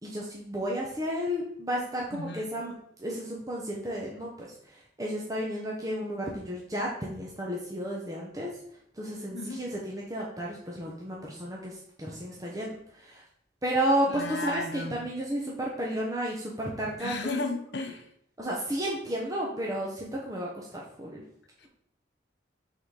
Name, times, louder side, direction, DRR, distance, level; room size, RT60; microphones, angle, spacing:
voice 1, 0.0-2.7 3.0-8.5 8.9-13.2 13.6-17.2 18.4-21.2, right 1 dB, 20° right, -3 dB, 0.8 m, -32 dB
voice 2, 2.1-2.5 9.3-9.7 14.1-15.0 17.0-18.1 21.6-21.7, left 3 dB, 60° left, 6 dB, 0.6 m, -34 dB
5.9 x 3.8 x 4.8 m, 0.69 s
head